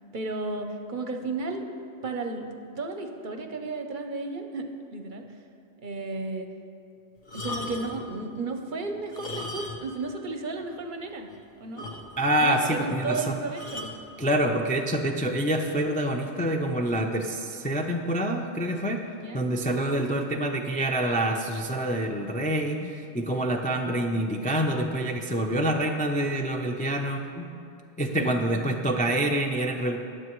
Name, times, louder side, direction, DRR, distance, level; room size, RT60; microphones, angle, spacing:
voice 1, 0.1-1.7 2.0-2.5 2.8-5.2 5.8-6.5 7.3-11.3 11.6-11.9 12.4-13.9 19.2-19.4 28.1-28.4, right 3 dB, 50° right, 5 dB, 0.8 m, -33 dB
sound 1, 7.2-8.1 9.0-10.0 10.3-10.4 10.9-11.0 11.3-11.4 11.8-12.4 13.6-14.0 14.9-15.1, left 2 dB, 55° left, 1.2 m, -37 dB
voice 2, 12.2-13.4 14.2-19.0 19.3-27.5 28.0-30.0, right 1 dB, 10° left, 1 dB, 0.4 m, -26 dB
21.0 x 7.7 x 3.1 m, 2.5 s
omnidirectional pair, 1.2 m